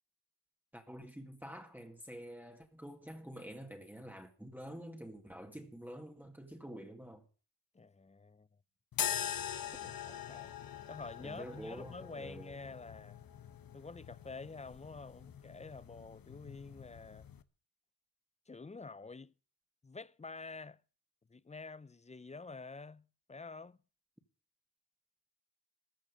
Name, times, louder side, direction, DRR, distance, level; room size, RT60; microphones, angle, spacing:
voice 1, 0.7-7.3 9.8-9.9 11.2-12.5, equal, 5° right, 2.1 m, -48 dB
voice 2, 7.7-8.5 9.8-10.5 10.9-13.2 13.7-17.3 18.5-19.3 19.8-20.8 21.3-23.8, left 3 dB, 15° left, 0.6 m, -48 dB
sound 1, 8.9-17.4, left 9 dB, 55° left, 1.1 m, -43 dB
15.0 x 6.1 x 9.8 m
cardioid pair, 60°, 42 cm